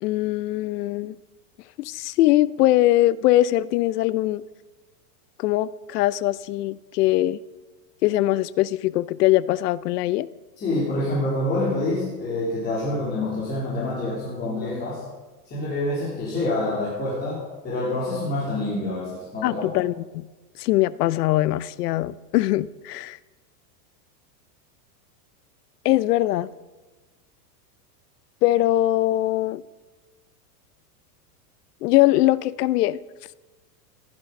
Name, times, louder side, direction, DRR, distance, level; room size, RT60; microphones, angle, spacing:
voice 1, 0.0-1.2 1.8-4.4 5.4-7.4 8.0-10.3 19.4-20.3 20.6-23.2 25.8-26.5 28.4-29.6 31.8-33.0, left 15 dB, 70° left, 19 dB, 0.7 m, -21 dB
voice 2, 10.6-15.0 15.5-19.7, left 2 dB, 20° left, -7 dB, 3.4 m, -27 dB
15.0 x 12.0 x 5.3 m, 1.2 s
supercardioid pair, 160°, 49 cm